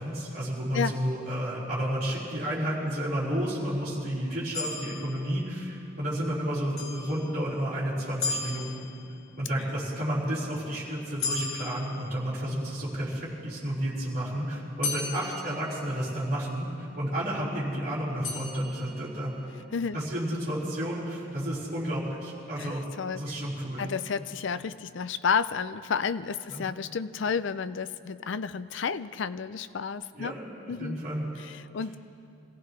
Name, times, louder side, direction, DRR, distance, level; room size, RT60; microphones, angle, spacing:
voice 1, 0.0-8.7 9.4-19.6 19.9-22.8 23.1-23.9 26.5-26.6 30.1-30.5 30.8-31.3, equal, 45° right, -7 dB, 4.9 m, -31 dB
sound 1, 4.5-5.9 6.8-7.7 8.2-9.4 11.2-12.7 14.8-16.4 18.2-19.4, left 4 dB, 80° left, 3.0 m, -36 dB
voice 2, 22.6-23.4 23.8-30.3 30.7-31.0 31.4-32.0, left 6 dB, 60° left, 13 dB, 0.4 m, -31 dB
26.0 x 16.0 x 3.2 m, 2.6 s
head